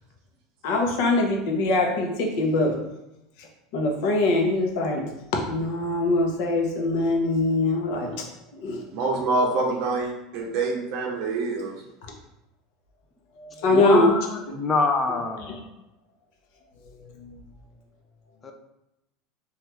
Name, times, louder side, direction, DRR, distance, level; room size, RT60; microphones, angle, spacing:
voice 1, 0.6-2.9 3.4-3.5 3.7-5.1 5.3-8.3 8.5-8.8 9.1-9.5 13.4-14.5 15.1-15.3 16.8-17.4, left 2 dB, 65° left, 1 dB, 0.7 m, -23 dB
voice 2, 8.9-11.7, right 3 dB, 60° right, -1 dB, 0.7 m, -26 dB
voice 3, 13.7-15.7 18.4-18.5, left 3 dB, 20° left, 4 dB, 0.4 m, -26 dB
2.9 x 2.4 x 3.3 m, 0.91 s
supercardioid pair, 140°, 0 cm